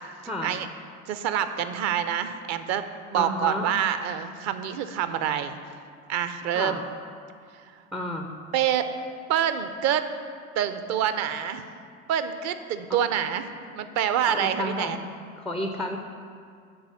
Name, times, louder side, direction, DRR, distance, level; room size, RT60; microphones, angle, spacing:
voice 1, 1.1-2.8 3.1-5.6 6.1-6.8 8.5-8.9 9.3-10.1 10.6-11.6 12.1-13.4 13.7-15.0, right 9 dB, 40° right, 10 dB, 0.6 m, -26 dB
voice 2, 3.2-3.7 6.5-6.8 7.9-8.3 12.9-13.0 14.3-15.0 15.4-16.0, left 1 dB, ahead, 3 dB, 0.3 m, -31 dB
9.4 x 4.0 x 6.9 m, 2.2 s
figure-of-eight pair, 70°, 41 cm